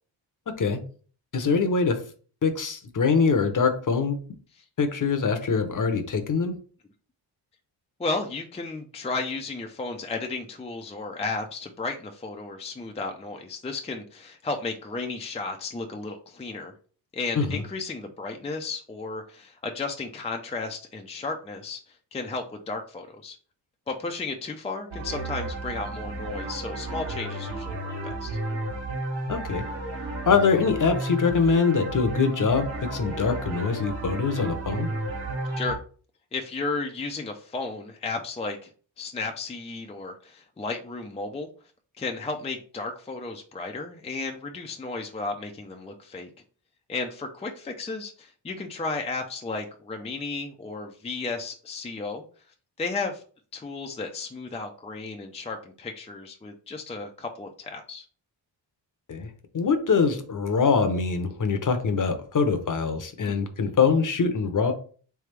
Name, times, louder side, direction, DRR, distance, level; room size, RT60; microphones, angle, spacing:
voice 1, 1.3-2.0 2.4-4.2 4.8-6.5 17.4-17.6 29.3-29.6 30.3-34.9 59.1-59.3 59.5-64.7, left 5 dB, 45° left, 7 dB, 0.8 m, -23 dB
voice 2, 8.0-16.7 17.1-23.4 23.9-28.4 35.6-35.8 36.3-38.7 39.0-41.5 42.0-46.3 46.9-52.2 52.8-53.2 53.5-58.1 63.3-63.4, left 3 dB, 15° left, 3 dB, 0.5 m, -34 dB
sound 1, 24.9-35.8, right 1 dB, 75° right, 1.5 m, -32 dB
3.4 x 3.4 x 3.3 m, 0.42 s
cardioid pair, 80°, 45 cm